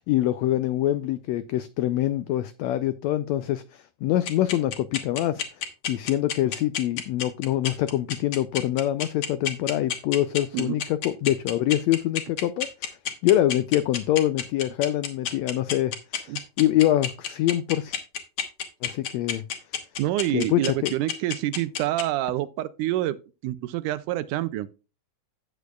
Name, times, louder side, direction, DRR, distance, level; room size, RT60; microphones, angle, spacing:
voice 1, 0.0-13.0 13.2-18.0 18.8-19.4 20.3-20.9, left 13 dB, 90° left, 1.5 m, -25 dB
sound 1, 4.3-22.0, left 9 dB, 70° left, 2.5 m, -29 dB
voice 2, 20.0-23.2 23.4-24.7, right 14 dB, 85° right, 2.1 m, -27 dB
11.0 x 8.3 x 2.3 m
omnidirectional pair, 3.6 m